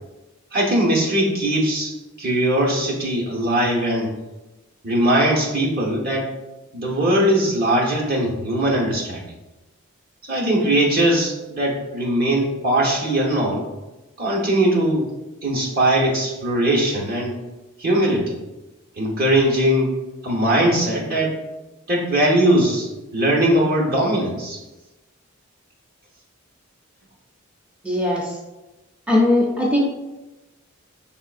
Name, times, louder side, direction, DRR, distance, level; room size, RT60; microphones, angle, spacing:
voice 1, 0.5-1.9 2.2-4.1 4.8-6.3 6.7-9.3 10.3-13.7 14.2-15.1 15.4-17.4 17.8-18.4 19.0-19.9 20.2-21.4 21.9-24.6, right 1 dB, 45° right, -2 dB, 0.9 m, -20 dB
voice 2, 27.8-28.3 29.1-29.8, left 1 dB, 5° right, -3 dB, 0.5 m, -19 dB
6.1 x 3.6 x 2.4 m, 1.1 s
head